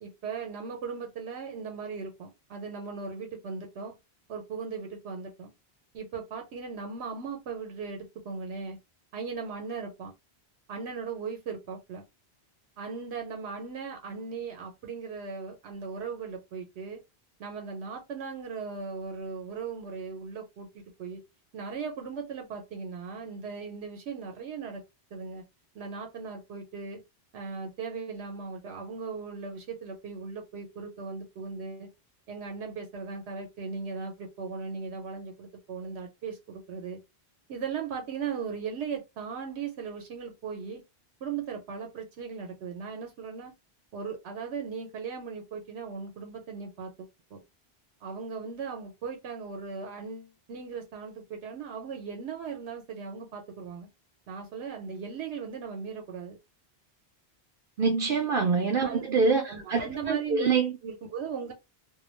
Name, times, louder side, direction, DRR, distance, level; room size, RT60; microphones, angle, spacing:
voice 1, 0.0-3.9 4.3-5.5 5.9-8.8 9.1-10.1 10.7-12.0 12.8-17.0 17.4-21.2 21.5-24.8 25.1-25.4 25.7-27.0 27.3-31.9 32.3-37.0 37.5-40.8 41.2-43.5 43.9-47.4 48.0-53.9 54.3-56.4 58.8-59.1 59.5-60.5 60.8-61.5, right 5 dB, 90° right, 0.9 m, -38 dB
voice 2, 57.8-60.7, right 4 dB, 65° right, 0.7 m, -25 dB
2.3 x 2.2 x 3.0 m
omnidirectional pair, 1.1 m